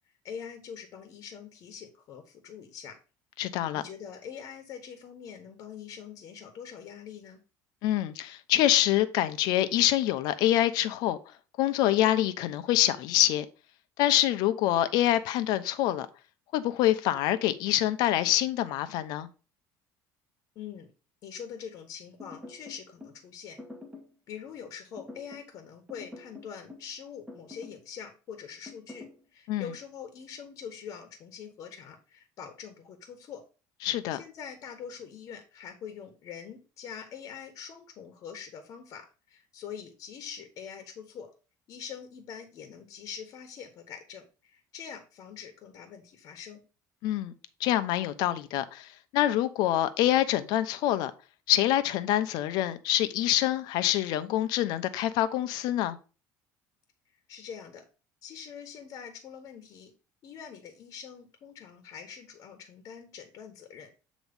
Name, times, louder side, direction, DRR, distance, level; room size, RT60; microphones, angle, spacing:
voice 1, 0.2-3.0 3.7-7.4 20.5-20.9 21.2-23.6 24.3-29.1 29.3-33.4 34.1-41.3 41.7-46.6 57.3-57.8 58.2-59.9 60.2-63.9, left 7 dB, 50° left, 1.2 m, -44 dB
voice 2, 3.4-3.8 7.8-11.2 11.6-13.4 14.0-16.1 16.5-19.3 29.5-29.7 33.8-34.2 47.0-47.3 47.6-51.1 51.5-56.0, left 13 dB, 70° left, 0.7 m, -26 dB
sound 1, 22.2-23.2 23.6-24.1 25.0-25.5 25.9-26.9 27.3-27.8 28.7-29.2, left 2 dB, 15° right, 1.7 m, -46 dB
8.2 x 3.1 x 5.2 m
cardioid pair, 140°, 7 cm